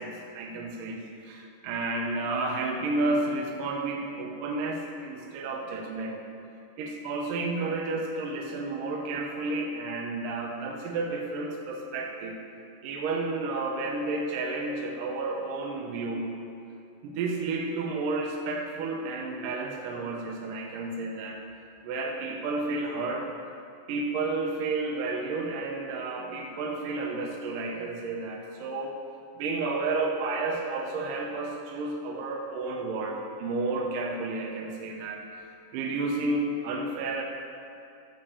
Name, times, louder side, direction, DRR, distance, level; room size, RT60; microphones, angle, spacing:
voice 1, 0.0-6.2 6.8-12.4 12.8-16.3 17.0-21.4 21.8-23.3 23.9-29.0 29.4-37.2, right 3 dB, 80° right, 0 dB, 1.9 m, -31 dB
13.5 x 5.1 x 7.2 m, 2.5 s
omnidirectional pair, 5.3 m